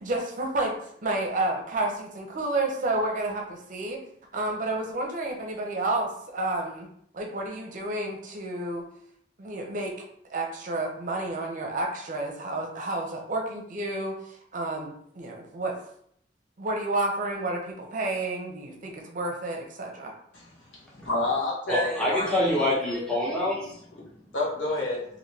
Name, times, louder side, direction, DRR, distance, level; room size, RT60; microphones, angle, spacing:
voice 1, 0.0-0.8 1.0-4.0 4.3-6.9 7.1-8.9 9.4-10.0 10.3-15.8 16.6-20.1, right 2 dB, 45° right, 2 dB, 0.6 m, -30 dB
voice 2, 21.0-22.7 24.3-25.0, left 2 dB, 70° left, -4 dB, 1.1 m, -28 dB
voice 3, 21.7-23.7, left 1 dB, 5° left, -6 dB, 0.7 m, -26 dB
3.2 x 2.6 x 2.7 m, 0.69 s
head